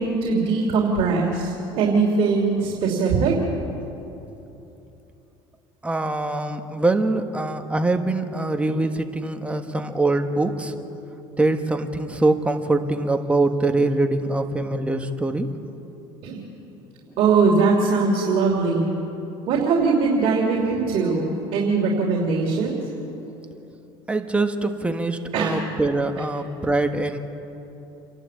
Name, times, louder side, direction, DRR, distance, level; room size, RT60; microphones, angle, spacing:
voice 1, 0.0-3.4 16.2-16.4 17.2-18.9 19.5-22.8 25.3-25.6, right 4 dB, 55° right, -2 dB, 3.1 m, -21 dB
voice 2, 5.8-10.7 11.4-15.5 20.7-20.9 24.1-27.2, right 2 dB, 10° right, 6 dB, 1.5 m, -23 dB
28.0 x 11.5 x 8.5 m, 3.0 s
supercardioid pair, 100°, 11 cm